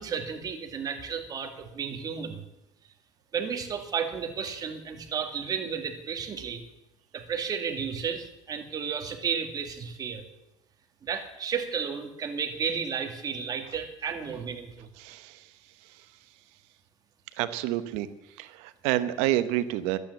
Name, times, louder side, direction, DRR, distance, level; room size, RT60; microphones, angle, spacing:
voice 1, 0.0-2.4 3.3-6.6 7.1-10.2 11.0-14.9, right 6 dB, 35° right, 5 dB, 2.1 m, -33 dB
voice 2, 17.4-18.1 18.4-20.0, right 14 dB, 90° right, 12 dB, 1.0 m, -28 dB
12.0 x 8.8 x 8.4 m, 0.90 s
cardioid pair, 120°, 11 cm